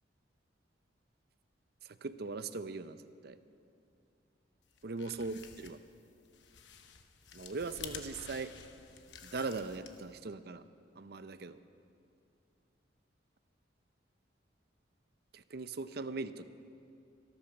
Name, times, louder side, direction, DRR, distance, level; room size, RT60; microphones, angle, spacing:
voice 1, 1.8-3.4 4.8-5.8 7.3-8.5 9.2-10.6 11.0-11.6 15.3-16.4, right 3 dB, 55° right, 12 dB, 0.6 m, -40 dB
sound 1, 4.7-10.2, left 7 dB, 70° left, 1.0 m, -51 dB
25.0 x 8.8 x 6.2 m, 2.6 s
head